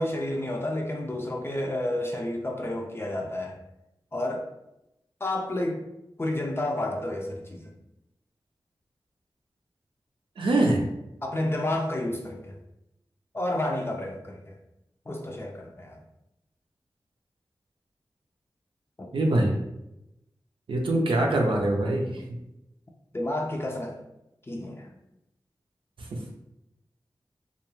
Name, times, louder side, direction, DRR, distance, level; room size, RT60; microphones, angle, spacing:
voice 1, 0.0-3.6 4.1-4.5 5.2-5.8 6.2-7.7 11.2-12.5 13.3-14.6 15.1-16.0 19.0-19.1 23.1-24.0 24.5-24.9, left 1 dB, 30° left, 1 dB, 0.4 m, -30 dB
voice 2, 10.4-10.8 19.1-19.6 20.7-22.2, right 1 dB, 90° right, 0 dB, 0.5 m, -23 dB
2.3 x 2.2 x 3.0 m, 0.88 s
cardioid pair, 40°, 9 cm